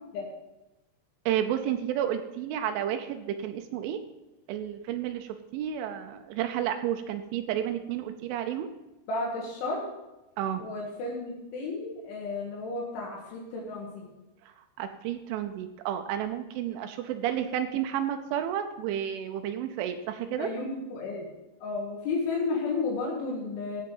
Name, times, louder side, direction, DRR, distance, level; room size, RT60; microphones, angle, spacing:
voice 1, 1.3-4.0 4.5-8.7 10.4-10.6 14.8-20.5, right 10 dB, 85° right, 7 dB, 3.1 m, -31 dB
voice 2, 9.1-9.9 10.6-14.1 20.4-21.3 21.6-23.8, left 3 dB, 80° left, -2 dB, 4.1 m, -32 dB
15.5 x 6.5 x 5.4 m, 0.99 s
omnidirectional pair, 5.5 m